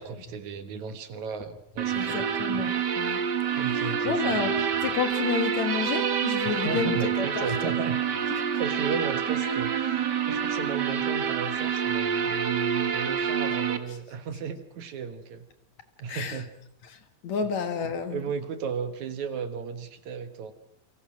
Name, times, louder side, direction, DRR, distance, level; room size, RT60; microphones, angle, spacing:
voice 1, 0.0-2.2 3.5-4.7 6.4-8.0 8.5-15.5 16.0-16.5 18.1-20.5, right 6 dB, 65° right, 2.7 m, -35 dB
sound 1, 1.8-13.8, right 7 dB, 45° right, 1.5 m, -27 dB
voice 2, 1.9-3.2 4.0-4.6 4.8-7.9 16.1-16.4 17.2-18.2, left 7 dB, 60° left, 2.6 m, -30 dB
Trumpet, 6.0-13.2, right 3 dB, 30° right, 3.0 m, -49 dB
29.5 x 24.5 x 6.2 m
omnidirectional pair, 3.9 m